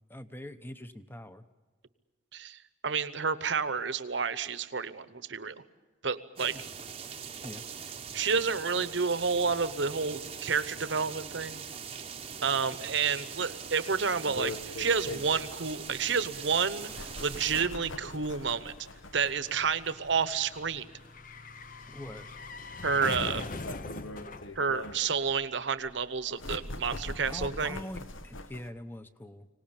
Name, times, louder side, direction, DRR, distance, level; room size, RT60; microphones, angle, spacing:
voice 1, 0.0-1.4 6.4-6.6 7.4-7.6 21.9-22.3 27.3-29.5, left 1 dB, 10° left, 10 dB, 0.8 m, -43 dB
voice 2, 2.3-5.5 6.0-6.6 8.1-11.6 12.4-14.5 14.8-18.7 19.1-20.9 22.8-23.4 24.6-27.8, right 5 dB, 65° right, 13 dB, 1.0 m, -30 dB
sound 1, 6.4-17.6, right 6 dB, 30° right, 0.8 m, -42 dB
sound 2, 14.3-28.7, left 2 dB, 90° left, 1.2 m, -44 dB
sound 3, 15.4-25.8 26.0-26.1, left 3 dB, 40° left, 0.8 m, -43 dB
25.0 x 18.5 x 8.8 m, 1.3 s
head